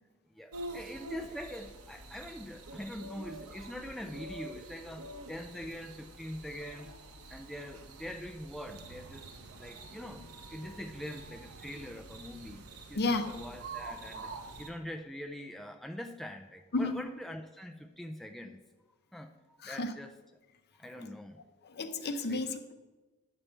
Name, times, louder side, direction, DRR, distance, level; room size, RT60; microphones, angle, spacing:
voice 1, 0.3-7.0 7.3-9.3 9.5-18.6 19.1-20.1 20.8-21.4 22.3-22.4, equal, ahead, 4 dB, 0.3 m, -44 dB
sound 1, 0.5-14.7, right 1 dB, 80° right, 0.9 m, -48 dB
sound 2, 8.7-14.6, right 5 dB, 50° right, 0.6 m, -48 dB
voice 2, 12.9-13.4 16.7-17.1 19.6-19.9 21.0-21.1 21.6-22.7, left 2 dB, 45° left, 8 dB, 0.7 m, -33 dB
9.9 x 6.8 x 4.4 m, 1.2 s
head